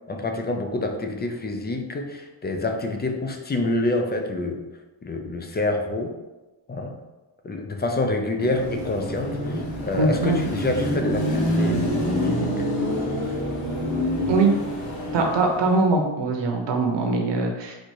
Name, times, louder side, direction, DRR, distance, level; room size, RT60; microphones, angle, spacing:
voice 1, 0.1-4.6 5.0-6.2 6.7-7.0 7.4-11.8 12.2-12.7, left 2 dB, 20° left, 4 dB, 0.4 m, -27 dB
Car passing by / Traffic noise roadway noise / Engine, 8.4-15.7, equal, 80° left, 1.5 m, -26 dB
voice 2, 9.9-10.4 14.3-14.5 15.1-17.8, right 3 dB, 60° right, 1 dB, 1.0 m, -22 dB
4.3 x 2.5 x 4.5 m, 1.1 s
wide cardioid pair, 140°, 49 cm